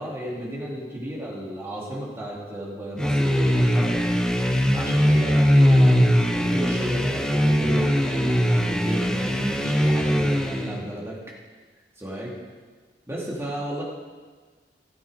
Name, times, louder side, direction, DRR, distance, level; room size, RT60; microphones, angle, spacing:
voice 1, 0.0-4.1 4.7-11.4 12.0-12.4 13.1-13.8, equal, 15° right, -4 dB, 2.7 m, -33 dB
sound 1, 3.0-10.8, equal, 5° left, 0.9 m, -20 dB
sound 2, 4.0-10.3, equal, 60° left, 1.9 m, -44 dB
17.0 x 7.9 x 5.1 m, 1.4 s
head